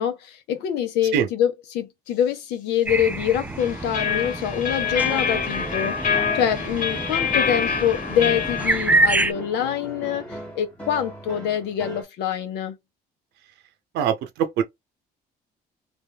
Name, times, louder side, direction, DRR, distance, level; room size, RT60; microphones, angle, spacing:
voice 1, 0.0-12.8, left 9 dB, 90° left, 1.0 m, -25 dB
sound 1, 2.8-9.3, right 2 dB, 10° right, 0.3 m, -27 dB
sound 2, 3.6-8.7, left 6 dB, 50° left, 1.3 m, -26 dB
sound 3, 4.8-12.0, equal, 5° left, 1.2 m, -39 dB
voice 2, 13.9-14.6, right 8 dB, 80° right, 0.8 m, -22 dB
3.5 x 2.6 x 2.3 m
cardioid pair, 110°, 17 cm